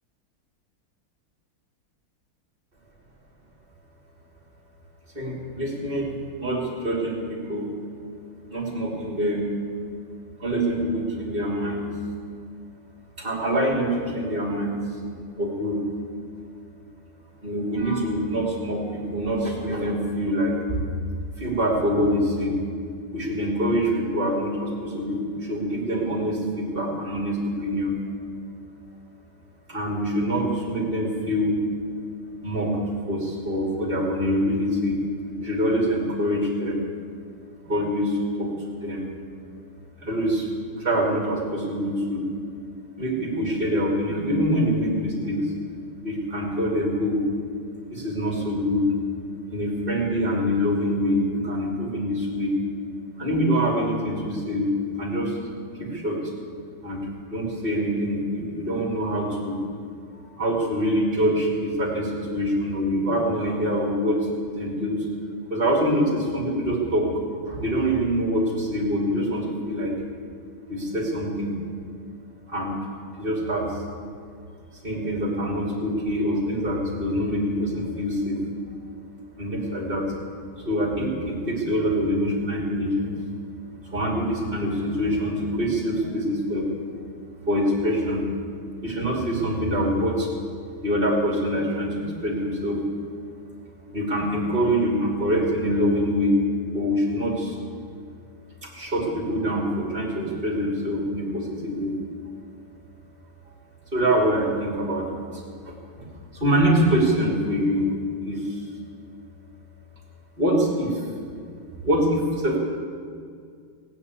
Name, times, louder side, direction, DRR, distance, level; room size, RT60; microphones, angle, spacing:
voice 1, 5.1-7.7 8.5-9.5 10.4-11.9 13.2-14.8 15.4-15.8 17.4-20.8 21.4-22.5 23.1-28.0 29.7-31.6 32.4-32.8 33.1-35.0 35.4-36.8 37.6-38.5 38.8-39.1 40.0-40.5 40.8-42.3 43.0-45.5 46.0-47.2 47.9-48.9 49.5-52.6 53.2-55.4 55.8-56.2 56.8-59.6 60.1-64.3 64.5-65.1 65.5-67.1 67.4-69.9 70.7-71.5 72.5-72.8 73.2-73.8 74.8-78.4 79.4-80.0 80.6-83.2 83.8-86.7 87.5-88.3 88.8-90.3 90.8-92.8 93.9-96.4 96.7-97.6 98.6-101.9 103.9-108.6 110.4-111.0 111.8-112.6, equal, 25° right, -3 dB, 3.3 m, -25 dB
17.0 x 9.5 x 8.4 m, 2.2 s
omnidirectional pair, 2.4 m